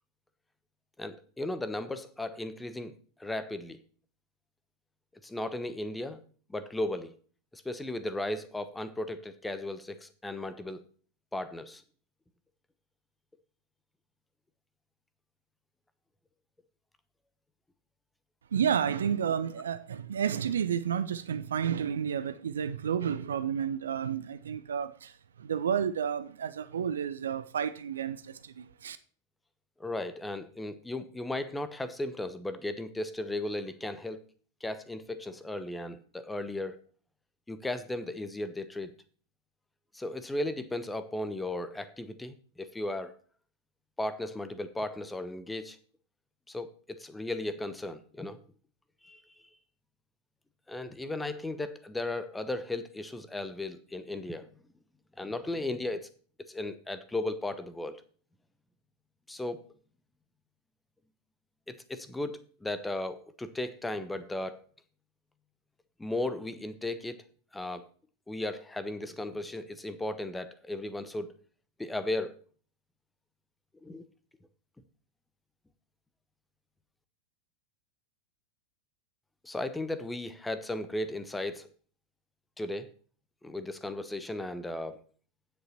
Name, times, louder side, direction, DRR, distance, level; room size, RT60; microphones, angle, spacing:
voice 1, 1.0-3.8 5.2-6.2 6.5-7.1 7.5-10.8 11.3-11.8 29.8-34.2 34.6-36.8 37.5-38.9 39.9-43.1 44.0-45.8 46.5-48.4 49.0-49.2 50.7-54.5 55.2-56.1 56.5-58.0 59.3-59.7 61.7-64.6 66.0-67.2 67.5-67.9 68.3-71.3 71.8-72.3 73.8-74.1 79.4-81.7 82.6-82.9 83.4-85.0, left 2 dB, 5° left, 0.9 m, -36 dB
voice 2, 18.5-29.0, right 8 dB, 65° right, 0.5 m, -31 dB
9.4 x 7.9 x 4.2 m
figure-of-eight pair, 90°, 0 cm